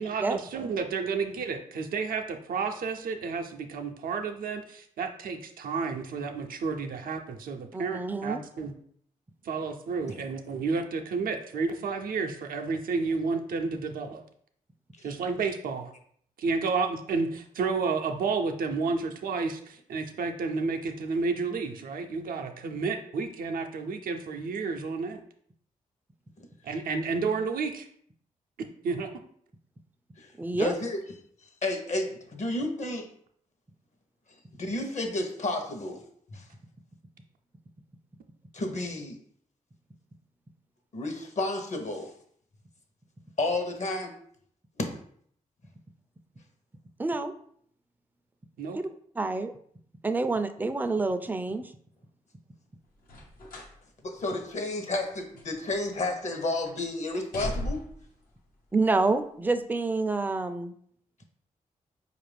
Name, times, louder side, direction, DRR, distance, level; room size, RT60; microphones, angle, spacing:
voice 1, 0.0-8.7 9.4-14.2 15.0-15.9 16.4-25.2 26.6-27.9 28.8-29.1 48.6-48.8, right 4 dB, 80° right, 4 dB, 0.5 m, -31 dB
voice 2, 7.7-8.4 30.4-30.7 47.0-47.3 48.7-48.9 49.2-49.5 50.0-51.7 58.7-60.7, right 3 dB, 15° right, 9 dB, 0.4 m, -28 dB
voice 3, 30.2-31.0 31.6-33.1 34.6-36.0 36.3-36.4 38.5-39.2 40.9-42.1 43.4-44.1 44.8-45.0 54.0-57.8, left 2 dB, 55° left, 5 dB, 0.8 m, -31 dB
sound 1, 53.0-53.8 54.2-54.3 55.0-56.1 56.4-56.7 57.1-58.1 58.9-59.1, left 1 dB, 85° left, 0.8 m, -38 dB
4.5 x 2.5 x 3.3 m, 0.63 s
cardioid pair, 60°, 14 cm